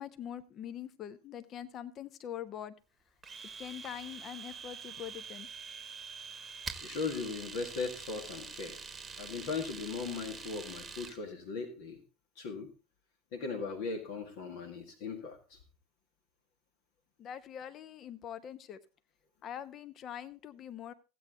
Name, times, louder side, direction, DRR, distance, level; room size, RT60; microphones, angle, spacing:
voice 1, 0.0-2.7 3.6-5.5 17.2-18.8 19.4-20.9, left 10 dB, 40° left, 13 dB, 0.8 m, -43 dB
Domestic sounds home sounds, 3.2-11.2, right 5 dB, 25° right, 1.1 m, -45 dB
voice 2, 6.8-8.8 9.2-12.0 12.4-12.7 13.3-15.6, left 4 dB, 65° left, 5 dB, 1.8 m, -38 dB
15.0 x 8.5 x 3.8 m, 0.32 s
hypercardioid pair, 80°, 0 cm